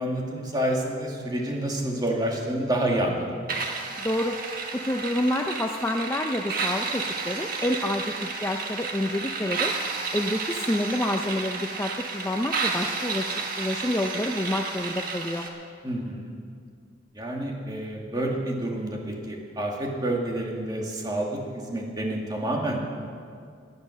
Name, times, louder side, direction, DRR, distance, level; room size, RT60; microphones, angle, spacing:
voice 1, 0.0-3.3 15.8-16.4 17.1-22.8, right 1 dB, 25° right, -1 dB, 2.1 m, -28 dB
sound 1, 3.5-15.5, right 4 dB, 50° right, 1.5 m, -32 dB
voice 2, 4.0-4.4 4.7-9.7 10.1-15.5, left 1 dB, 15° left, 4 dB, 0.5 m, -28 dB
18.0 x 10.5 x 6.4 m, 2.2 s
head